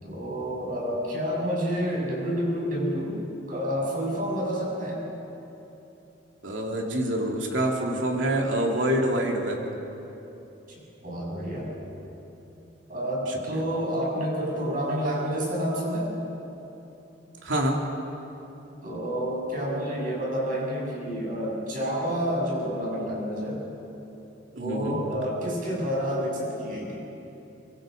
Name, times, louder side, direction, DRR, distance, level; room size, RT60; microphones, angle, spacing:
voice 1, 0.0-3.2 3.5-5.0 11.0-11.8 12.9-16.1 18.8-23.6 24.5-27.0, equal, 45° right, -3 dB, 7.2 m, -29 dB
voice 2, 6.4-9.6 13.5-13.6 17.4-17.8 24.5-25.0, right 1 dB, 85° right, 0 dB, 3.1 m, -26 dB
25.0 x 24.0 x 5.3 m, 3.0 s
head